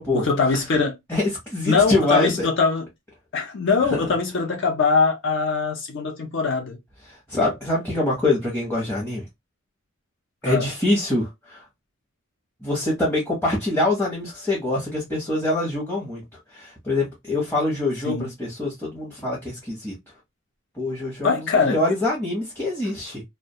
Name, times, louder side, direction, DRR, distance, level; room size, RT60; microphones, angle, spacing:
voice 1, 0.1-0.9 1.7-2.9 3.3-6.8 10.5-10.7 18.0-18.3 21.2-21.8, left 4 dB, 55° left, 0.5 m, -22 dB
voice 2, 1.1-2.5 3.9-4.0 7.1-9.2 10.4-11.6 12.6-16.2 16.5-19.9 20.8-23.2, left 2 dB, 10° left, 0.7 m, -24 dB
2.3 x 2.1 x 2.7 m
head